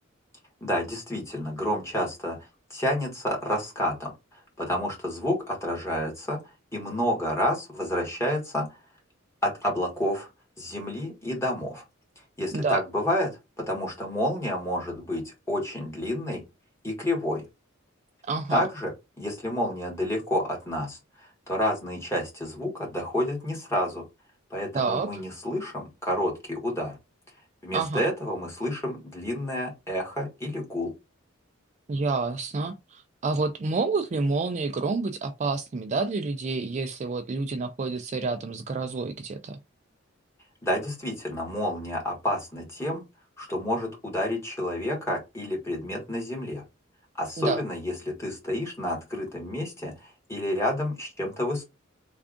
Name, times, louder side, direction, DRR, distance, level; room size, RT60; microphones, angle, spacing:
voice 1, 0.6-2.4 2.7-6.4 6.7-8.6 9.4-10.3 10.6-11.8 12.4-13.3 13.6-16.4 16.8-17.4 18.5-21.0 21.5-24.0 24.5-27.0 27.6-30.9 40.6-43.0 43.4-46.6 47.2-51.6, left 1 dB, 15° left, 1.5 m, -29 dB
voice 2, 18.2-18.6 24.7-25.2 27.7-28.0 31.9-39.6 47.4-47.6, right 3 dB, 35° right, 0.3 m, -28 dB
3.4 x 2.4 x 3.6 m
head